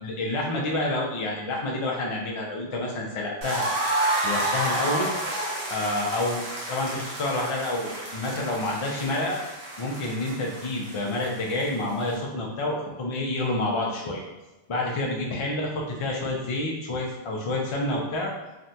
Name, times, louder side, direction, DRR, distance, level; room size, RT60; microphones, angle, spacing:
voice 1, 0.0-3.7 4.2-5.1 5.7-6.4 6.7-9.4 9.8-14.2 14.7-18.3, left 2 dB, 55° left, -1 dB, 0.3 m, -28 dB
sound 1, 3.4-12.1, right 1 dB, 70° right, 1.0 m, -30 dB
3.4 x 2.1 x 2.7 m, 1.1 s
omnidirectional pair, 1.1 m